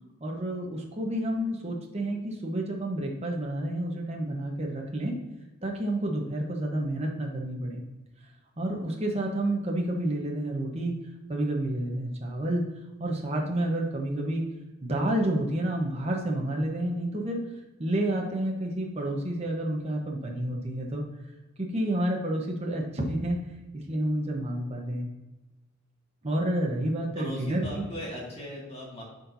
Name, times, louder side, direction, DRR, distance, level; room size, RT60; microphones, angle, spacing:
voice 1, 0.2-5.2 5.6-7.8 8.6-11.0 11.3-12.6 13.0-14.5 14.8-17.4 17.8-21.0 21.6-23.4 23.7-25.1 26.2-27.8, right 1 dB, 30° right, -1 dB, 1.0 m, -29 dB
voice 2, 27.2-29.0, equal, 25° left, -3 dB, 2.0 m, -38 dB
11.5 x 4.4 x 2.7 m, 1.1 s
head